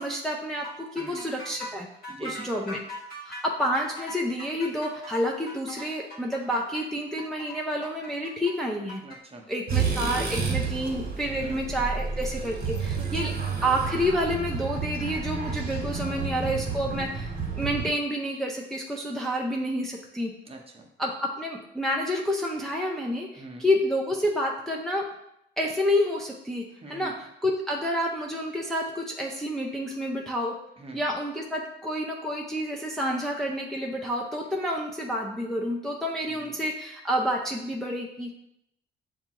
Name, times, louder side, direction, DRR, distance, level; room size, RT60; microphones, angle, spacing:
voice 1, 0.0-1.9 2.2-2.8 3.3-9.0 9.5-13.3 13.6-20.3 21.0-25.0 25.6-27.1 27.4-30.6 30.9-38.3, equal, ahead, -2 dB, 0.5 m, -29 dB
sound 1, 0.6-9.2, left 1 dB, 50° left, 1.2 m, -41 dB
voice 2, 1.0-1.3 2.1-2.7 9.0-9.4 11.4-11.6 12.9-13.3 16.1-16.6 20.4-20.9 23.3-23.7 26.7-27.1 30.8-31.0 36.3-36.6, right 2 dB, 30° right, 2 dB, 0.8 m, -44 dB
sound 2, 9.7-17.9, right 5 dB, 50° right, 1.1 m, -30 dB
6.9 x 2.3 x 2.9 m, 0.79 s
cardioid pair, 90°, 20 cm